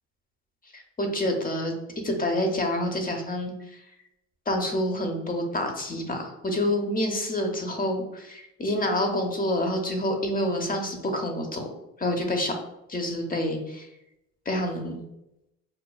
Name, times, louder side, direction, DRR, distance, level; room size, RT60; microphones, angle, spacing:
voice 1, 0.7-1.7 2.0-3.5 4.5-11.7 12.0-12.6 12.9-13.9 14.5-15.0, left 1 dB, 25° left, 4 dB, 0.8 m, -27 dB
5.2 x 2.2 x 2.2 m, 0.85 s
supercardioid pair, 65°, 36 cm